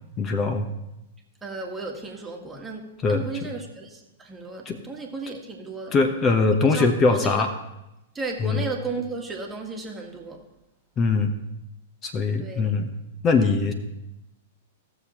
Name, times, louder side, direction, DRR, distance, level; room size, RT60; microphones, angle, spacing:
voice 1, 0.2-0.7 3.0-3.2 4.7-4.8 5.9-7.5 8.4-8.6 11.0-11.3 12.0-12.9 13.2-13.7, left 4 dB, 30° left, 6 dB, 1.0 m, -21 dB
voice 2, 1.4-5.9 6.6-7.4 8.1-10.4 12.4-12.7, right 3 dB, 15° right, 1 dB, 1.7 m, -34 dB
16.5 x 7.0 x 3.0 m, 0.92 s
figure-of-eight pair, 105°, 0 cm